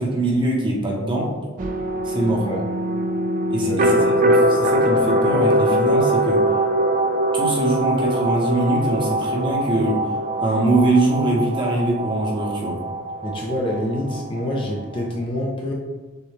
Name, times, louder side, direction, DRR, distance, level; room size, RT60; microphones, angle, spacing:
voice 1, 0.0-1.3 2.0-2.5 3.5-6.5 7.3-10.0 10.4-12.8, right 1 dB, 25° right, -2 dB, 0.9 m, -22 dB
sound 1, 1.6-15.1, right 1 dB, 40° right, 0.4 m, -22 dB
voice 2, 3.6-3.9 13.2-15.7, left 1 dB, 25° left, -1 dB, 0.5 m, -26 dB
6.5 x 2.3 x 3.2 m, 1.2 s
head